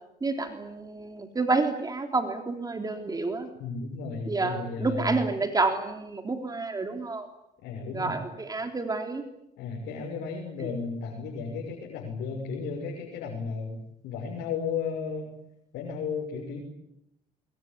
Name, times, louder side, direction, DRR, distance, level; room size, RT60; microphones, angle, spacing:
voice 1, 0.2-3.5 4.3-7.3 7.9-9.2, right 3 dB, 20° right, 5 dB, 3.5 m, -29 dB
voice 2, 3.6-5.2 7.6-8.2 9.6-13.8 14.0-15.3 15.7-16.6, left 5 dB, 85° left, 0 dB, 6.3 m, -34 dB
24.5 x 23.0 x 9.7 m, 0.82 s
cardioid pair, 110°, 17 cm